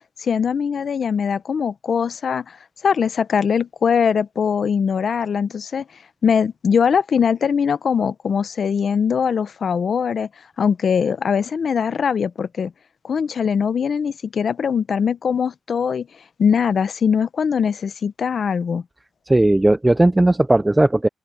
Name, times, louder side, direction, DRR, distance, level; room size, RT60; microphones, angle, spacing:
voice 1, 0.2-2.6 2.8-5.8 6.2-10.3 10.6-12.7 13.0-16.1 16.4-18.8, left 6 dB, 45° left, 0.6 m, -21 dB
voice 2, 19.3-21.1, right 1 dB, 10° right, 0.4 m, -16 dB
open air
wide cardioid pair, 170°, 0 cm